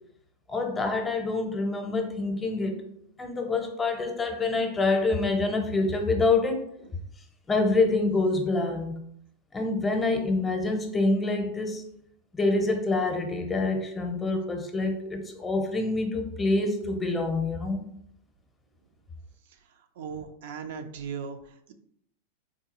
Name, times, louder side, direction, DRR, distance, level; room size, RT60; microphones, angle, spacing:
voice 1, 0.5-2.8 3.2-6.6 7.5-9.0 9.5-11.8 12.3-17.8, left 3 dB, 20° left, 4 dB, 0.6 m, -26 dB
voice 2, 19.5-21.7, right 6 dB, 65° right, 7 dB, 0.3 m, -39 dB
3.6 x 2.3 x 2.9 m, 0.72 s
hypercardioid pair, 105°, 0 cm